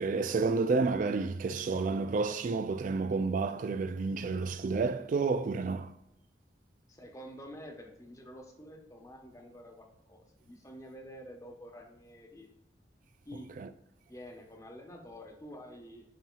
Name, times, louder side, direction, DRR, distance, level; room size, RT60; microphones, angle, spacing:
voice 1, 0.0-6.0 13.6-13.7, right 4 dB, 45° right, 0.3 m, -30 dB
voice 2, 6.9-12.5 13.2-13.5 14.1-16.0, equal, 20° left, 1.1 m, -48 dB
9.2 x 5.8 x 2.4 m
head